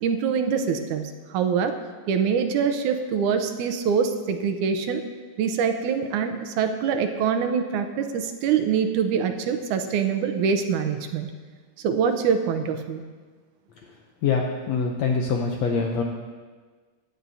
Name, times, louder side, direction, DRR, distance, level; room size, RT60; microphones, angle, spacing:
voice 1, 0.0-1.0 1.3-1.7 2.1-5.0 5.4-11.3 11.8-13.0, right 6 dB, 80° right, 7 dB, 2.2 m, -24 dB
voice 2, 14.2-16.0, left 5 dB, 70° left, 1 dB, 1.8 m, -24 dB
18.0 x 11.5 x 2.8 m, 1.5 s
omnidirectional pair, 3.5 m